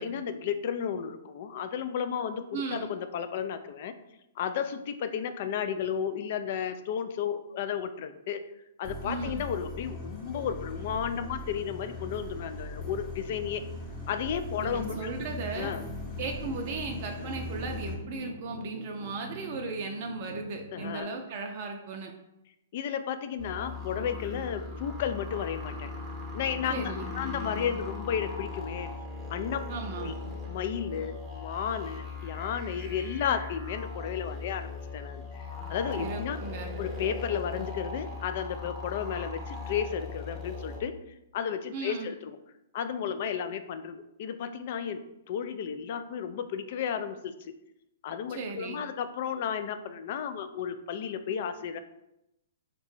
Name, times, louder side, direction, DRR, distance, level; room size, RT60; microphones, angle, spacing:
voice 1, 0.0-3.9 4.4-8.4 8.8-13.6 14.1-15.1 15.6-15.8 20.7-21.2 22.7-25.9 26.3-28.9 29.3-29.6 30.0-30.2 30.5-36.4 36.8-41.0 41.3-42.4 42.7-47.6 48.0-51.8, left 8 dB, 55° left, 10 dB, 0.3 m, -33 dB
voice 2, 2.5-2.9 9.0-9.4 14.6-15.8 16.2-22.1 26.7-27.0 29.7-30.2 36.0-36.7 41.7-42.1 48.3-48.8, right 4 dB, 50° right, 2 dB, 0.4 m, -36 dB
sound 1, 8.8-18.0, left 2 dB, 20° left, 0.9 m, -40 dB
sound 2, 14.7-21.0, left 1 dB, 90° left, 1.0 m, -44 dB
sound 3, 23.4-40.8, left 3 dB, 5° right, 0.7 m, -39 dB
3.9 x 2.1 x 3.1 m, 0.87 s
hypercardioid pair, 130°, 0 cm